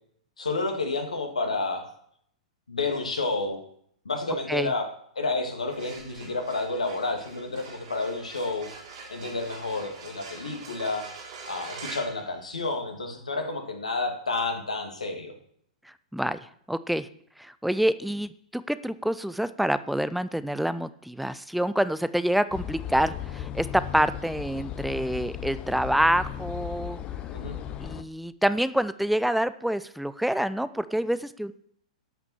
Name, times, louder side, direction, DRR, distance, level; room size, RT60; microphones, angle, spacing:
voice 1, 0.4-1.9 2.7-3.6 4.0-4.9 5.2-8.7 9.1-11.1 11.5-15.3 27.3-27.6, left 3 dB, 70° left, 4 dB, 2.3 m, -30 dB
sound 1, 5.5-13.0, right 4 dB, 50° right, 3.4 m, -44 dB
voice 2, 16.1-17.1 17.4-27.0 27.8-31.5, right 1 dB, ahead, 14 dB, 0.4 m, -27 dB
sound 2, 22.5-28.0, left 10 dB, 25° left, 0.8 m, -36 dB
12.0 x 6.0 x 7.1 m, 0.68 s
figure-of-eight pair, 105°, 4 cm